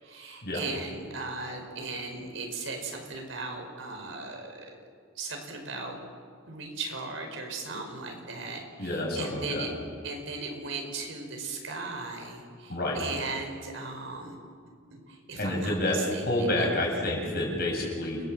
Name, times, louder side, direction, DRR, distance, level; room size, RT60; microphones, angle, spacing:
voice 1, 0.0-4.7 5.2-6.0 6.5-9.7 10.0-14.4 14.7-16.7, right 3 dB, 70° right, 3 dB, 5.3 m, -37 dB
voice 2, 8.8-9.6 12.7-13.0 15.4-16.0 16.3-18.2, left 1 dB, 50° left, -1 dB, 8.0 m, -28 dB
29.0 x 21.5 x 7.8 m, 2.1 s
head